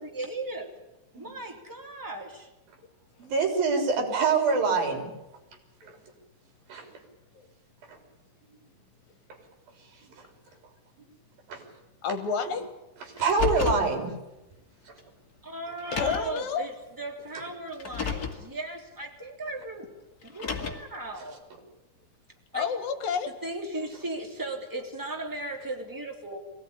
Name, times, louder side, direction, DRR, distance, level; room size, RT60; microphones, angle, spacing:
voice 1, 0.0-0.7 1.1-2.5 15.4-19.9 20.2-21.5 22.5-22.7 23.3-26.4, right 2 dB, 5° right, 2 dB, 2.5 m, -36 dB
voice 2, 3.2-5.1 6.7-6.9 7.9-8.0 11.5-11.6 12.5-12.6 13.0-14.1 14.9-15.0, right 5 dB, 75° right, 4 dB, 5.4 m, -25 dB
voice 3, 12.0-12.6 15.9-16.7 22.5-23.3, left 6 dB, 70° left, 10 dB, 3.2 m, -29 dB
Car, 13.2-13.9 15.0-15.1 15.8-16.4 17.7-18.4 20.2-21.0, left 7 dB, 30° left, 2.2 m, -31 dB
23.0 x 17.5 x 10.0 m, 0.98 s
omnidirectional pair, 4.2 m